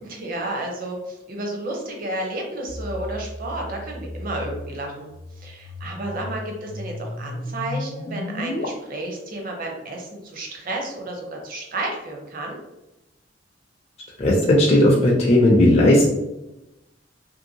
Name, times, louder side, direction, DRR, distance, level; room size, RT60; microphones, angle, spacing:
voice 1, 0.0-12.6, right 1 dB, 50° right, 1 dB, 0.7 m, -32 dB
sound 1, 2.7-8.7, left 1 dB, 90° left, 0.5 m, -34 dB
voice 2, 14.2-16.1, left 1 dB, 35° left, -2 dB, 0.4 m, -16 dB
2.9 x 2.7 x 2.7 m, 0.95 s
head